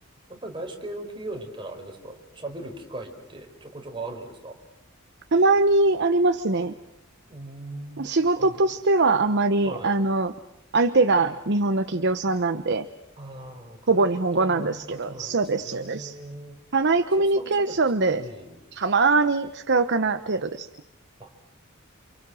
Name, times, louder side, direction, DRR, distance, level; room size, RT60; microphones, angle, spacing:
voice 1, 0.3-4.6 7.3-8.1 8.3-8.6 9.6-10.0 13.2-16.6 17.2-17.9 18.2-18.6 21.2-21.5, right 2 dB, 25° right, 3 dB, 4.9 m, -39 dB
voice 2, 5.3-6.7 8.0-10.3 10.7-12.9 13.9-16.2 16.7-18.2 18.8-20.7, right 3 dB, 55° right, 8 dB, 1.0 m, -22 dB
29.0 x 28.5 x 6.4 m, 0.78 s
head